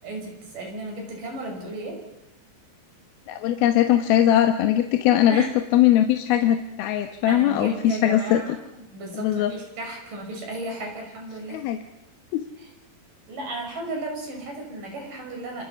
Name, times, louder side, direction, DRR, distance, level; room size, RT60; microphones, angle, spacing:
voice 1, 0.0-2.0 5.3-5.5 7.3-11.6 12.6-12.7 13.3-15.6, right 1 dB, 60° right, 1 dB, 8.0 m, -34 dB
voice 2, 3.3-5.4 5.7-8.4 9.1-9.5 11.5-11.8 12.3-12.4, left 11 dB, 80° left, 6 dB, 2.9 m, -20 dB
27.5 x 27.5 x 5.9 m, 0.91 s
omnidirectional pair, 4.4 m